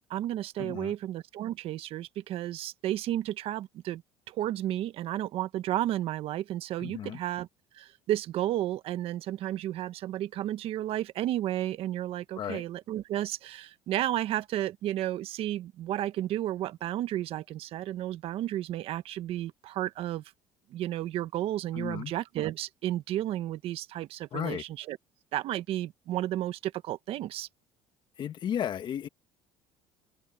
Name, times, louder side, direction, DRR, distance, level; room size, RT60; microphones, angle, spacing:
voice 1, 0.0-4.0 4.3-7.5 7.7-20.2 20.7-25.0 25.3-27.5, right 13 dB, 60° right, 1.3 m, -32 dB
voice 2, 0.6-0.9 6.8-7.2 12.4-12.6 21.7-22.1 24.3-24.6 28.2-29.1, left 9 dB, 45° left, 1.7 m, -34 dB
open air
cardioid pair, 110°, 11 cm